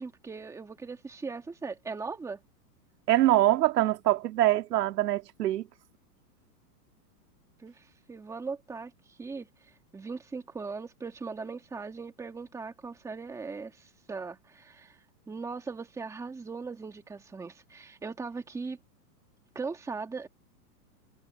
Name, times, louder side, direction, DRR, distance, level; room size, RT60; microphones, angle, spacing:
voice 1, 0.0-2.4 7.6-9.5 9.9-15.0 15.3-18.8 19.6-20.3, right 4 dB, 5° right, 2.0 m, -39 dB
voice 2, 3.1-5.7, right 14 dB, 70° right, 2.5 m, -24 dB
supercardioid pair, 165°, 50 cm